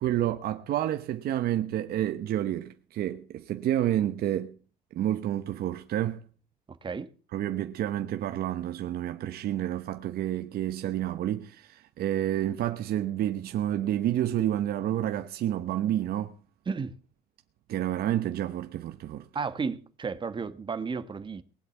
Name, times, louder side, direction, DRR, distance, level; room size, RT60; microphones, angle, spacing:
voice 1, 0.0-4.5 4.9-6.2 7.3-16.3 17.7-19.3, right 12 dB, 65° right, 1.0 m, -29 dB
voice 2, 6.7-7.1 16.7-17.0 19.3-21.4, right 5 dB, 30° right, 1.3 m, -33 dB
19.5 x 7.9 x 7.2 m
cardioid pair, 110°, 17 cm